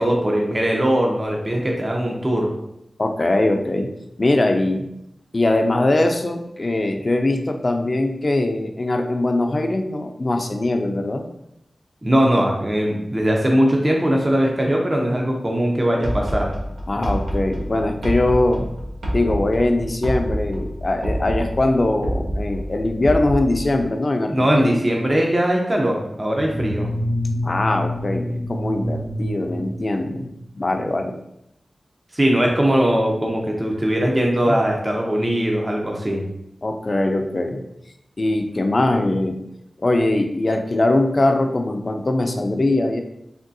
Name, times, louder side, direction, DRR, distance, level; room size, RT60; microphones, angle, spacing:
voice 1, 0.0-2.5 12.0-16.5 24.3-26.9 32.1-36.2, equal, 30° right, 0 dB, 0.5 m, -20 dB
voice 2, 3.0-3.9 4.2-4.9 5.3-11.3 16.9-18.7 19.1-24.8 27.4-30.3 30.6-31.2 34.5-34.6 36.6-37.6 38.2-39.4 39.8-43.0, left 2 dB, 45° left, 5 dB, 0.3 m, -21 dB
sound 1, 16.0-23.9, equal, 85° right, 0.6 m, -27 dB
sound 2, 26.3-30.4, left 1 dB, 55° right, 0.9 m, -27 dB
3.5 x 2.3 x 2.6 m, 0.81 s
cardioid pair, 50°, 0 cm